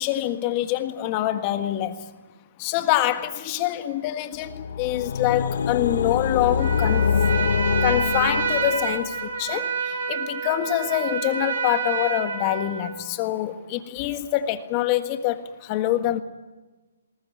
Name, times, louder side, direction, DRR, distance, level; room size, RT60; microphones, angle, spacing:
voice 1, 0.0-2.0 2.6-7.1 7.8-16.2, left 13 dB, 25° left, 9 dB, 1.6 m, -25 dB
sound 1, 4.5-9.1, left 7 dB, 60° left, 0.8 m, -24 dB
Trumpet, 6.6-13.0, right 5 dB, 65° right, 4.4 m, -28 dB
20.5 x 19.0 x 9.6 m, 1.2 s
hypercardioid pair, 155°, 0 cm